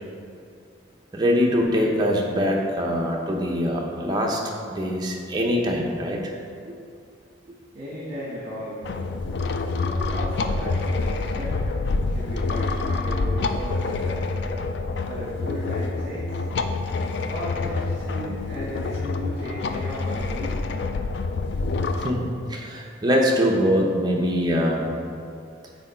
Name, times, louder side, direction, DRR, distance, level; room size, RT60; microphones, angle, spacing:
voice 1, 1.1-4.4 4.7-6.3 22.0-24.9, equal, 20° right, -1 dB, 0.7 m, -23 dB
voice 2, 7.7-8.8 9.7-11.7 12.0-14.3 15.1-16.4 17.2-20.6, equal, 45° right, -8 dB, 1.2 m, -35 dB
sound 1, 8.8-22.1, left 3 dB, 60° left, 0.3 m, -27 dB
6.2 x 4.5 x 4.4 m, 2.4 s
head